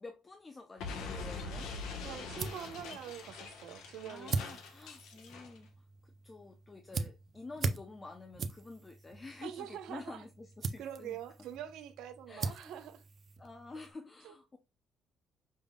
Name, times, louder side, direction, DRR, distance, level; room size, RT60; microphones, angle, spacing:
voice 1, 0.0-1.7 4.1-5.7 6.0-11.2 12.3-12.7 13.4-14.6, left 3 dB, 20° left, 0.6 m, -49 dB
Explosion, 0.8-5.6, left 4 dB, 85° left, 1.0 m, -43 dB
sound 1, 1.8-13.9, right 4 dB, 40° right, 0.5 m, -42 dB
voice 2, 2.0-4.6 9.4-10.2 10.8-13.0 14.2-14.3, right 10 dB, 85° right, 0.8 m, -45 dB
5.3 x 3.6 x 2.2 m
cardioid pair, 135°, 0 cm